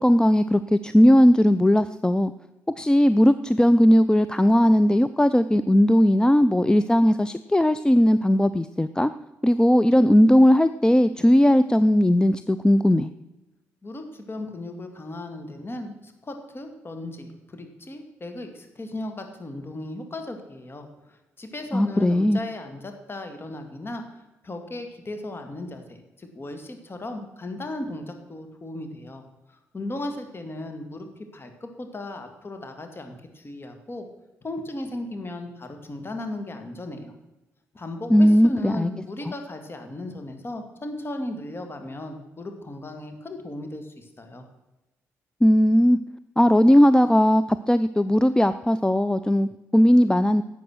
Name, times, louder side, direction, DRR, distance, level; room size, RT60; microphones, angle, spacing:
voice 1, 0.0-2.3 2.8-9.1 9.4-13.1 21.7-22.4 38.1-38.9 45.4-46.0 46.4-50.4, equal, 10° left, 12 dB, 0.5 m, -18 dB
voice 2, 13.8-24.0 24.4-29.2 29.7-31.1 31.3-34.1 34.4-37.1 37.7-44.5, left 1 dB, 30° left, 6 dB, 2.5 m, -36 dB
11.5 x 7.8 x 6.4 m, 1.0 s
hypercardioid pair, 45°, 7 cm